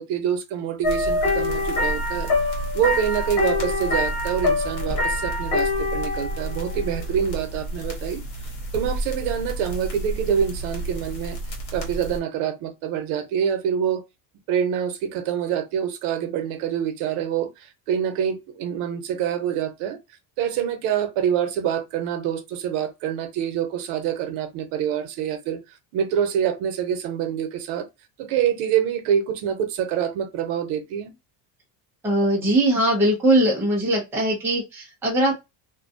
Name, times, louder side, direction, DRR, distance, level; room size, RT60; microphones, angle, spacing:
voice 1, 0.0-2.3 2.7-8.2 8.7-11.4 11.7-14.0 14.5-20.0 20.4-25.6 25.9-27.9 28.2-31.1, right 8 dB, 85° right, 0.8 m, -26 dB
sound 1, 0.8-12.2, left 2 dB, 65° left, 1.2 m, -26 dB
voice 2, 32.0-35.4, right 1 dB, 5° right, 0.4 m, -20 dB
2.4 x 2.2 x 2.6 m
cardioid pair, 170°, 49 cm